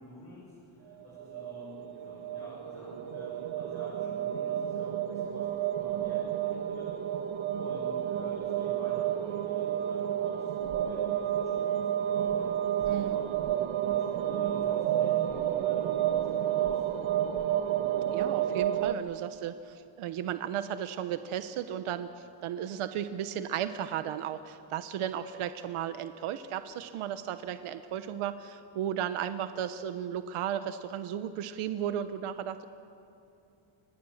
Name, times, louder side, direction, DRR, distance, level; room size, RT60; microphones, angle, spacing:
voice 1, 0.0-13.2 13.8-17.3, left 1 dB, 30° left, -7 dB, 7.5 m, -49 dB
sound 1, 1.0-18.9, right 11 dB, 70° right, 1.4 m, -30 dB
voice 2, 12.9-13.2 18.1-22.1 22.4-32.6, right 10 dB, 85° right, 10 dB, 1.1 m, -35 dB
29.5 x 24.5 x 7.3 m, 2.7 s
cardioid pair, 170°, 49 cm